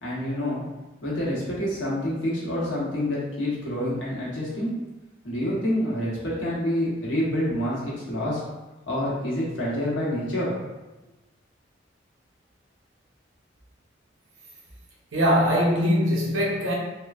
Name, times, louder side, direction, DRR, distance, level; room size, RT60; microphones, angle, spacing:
voice 1, 0.0-0.6 1.0-4.7 5.2-8.4 8.9-10.5, left 1 dB, 80° left, -6 dB, 1.1 m, -27 dB
voice 2, 15.1-16.7, equal, 85° right, -3 dB, 0.8 m, -21 dB
3.6 x 2.2 x 2.4 m, 1.1 s
head